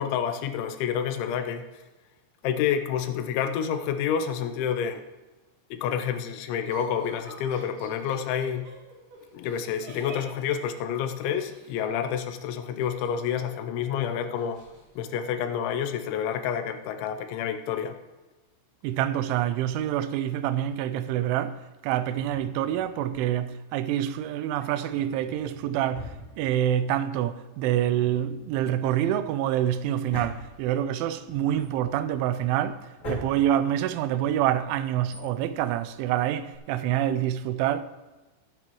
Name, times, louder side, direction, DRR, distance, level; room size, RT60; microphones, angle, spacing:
voice 1, 0.0-1.7 2.4-5.0 5.7-8.7 9.3-14.6 15.0-18.0, left 8 dB, 80° left, 3.0 m, -29 dB
Laughter, 6.7-11.7 12.8-13.6 13.9-14.0 14.4-14.8, right 1 dB, 60° right, 4.8 m, -45 dB
voice 2, 18.8-21.6 21.8-26.1 26.4-32.8 33.1-37.8, right 11 dB, 85° right, 3.0 m, -26 dB
Drawer open or close, 22.1-23.6 24.5-27.0 27.2-27.3 27.8-36.6, left 1 dB, 25° left, 2.8 m, -44 dB
19.0 x 9.0 x 3.1 m
omnidirectional pair, 5.4 m